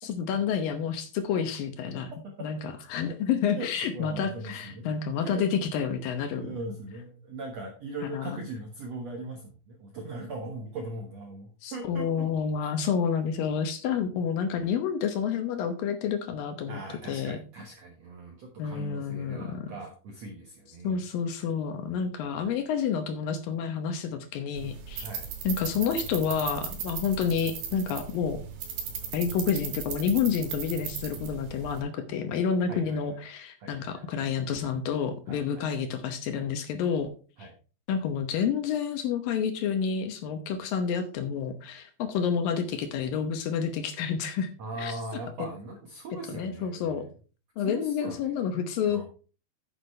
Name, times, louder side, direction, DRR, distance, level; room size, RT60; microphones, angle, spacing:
voice 1, 0.0-2.1 2.4-6.5 8.1-8.4 11.6-16.8 17.1-17.4 18.6-19.7 20.8-25.1 25.4-28.4 29.1-37.1 37.4-37.5 37.9-44.5 44.8-45.0 46.3-47.1 47.6-49.0, left 7 dB, 70° left, 8 dB, 2.3 m, -29 dB
voice 2, 2.2-2.7 3.5-3.7 3.9-4.9 5.2-5.4 6.4-12.3 16.7-21.0 22.2-22.5 25.0-25.3 32.7-33.2 33.6-34.1 35.3-35.8 37.4-37.5 44.6-47.1 47.6-48.3 48.9-49.0, right 2 dB, 65° right, 2 dB, 1.7 m, -40 dB
sound 1, 24.6-31.8, right 7 dB, 90° right, 4.2 m, -37 dB
9.7 x 8.0 x 3.2 m, 0.36 s
omnidirectional pair, 4.8 m